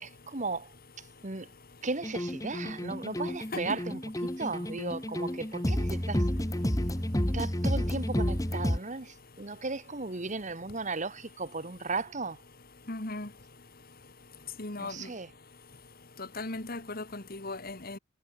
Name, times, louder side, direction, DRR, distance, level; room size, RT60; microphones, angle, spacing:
voice 1, 0.0-1.5 1.8-4.0 4.4-6.3 7.3-12.4 14.8-15.3, right 3 dB, 35° right, 1.7 m, -36 dB
sound 1, 2.0-8.8, equal, 15° left, 1.6 m, -30 dB
voice 2, 12.9-13.3 14.6-15.1 16.2-18.0, left 2 dB, 45° left, 2.3 m, -37 dB
head